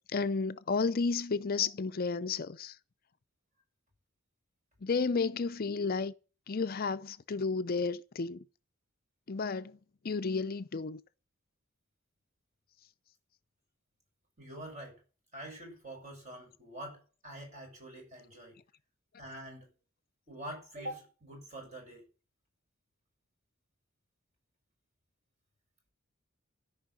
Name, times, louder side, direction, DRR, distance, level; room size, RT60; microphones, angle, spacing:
voice 1, 0.1-2.8 4.8-6.1 6.5-8.4 9.3-9.8 10.0-11.0, left 4 dB, 45° left, 0.5 m, -32 dB
voice 2, 14.4-15.0 15.3-18.6 19.2-19.7 20.3-22.1, right 1 dB, 35° right, 7.4 m, -45 dB
14.0 x 5.6 x 9.7 m
head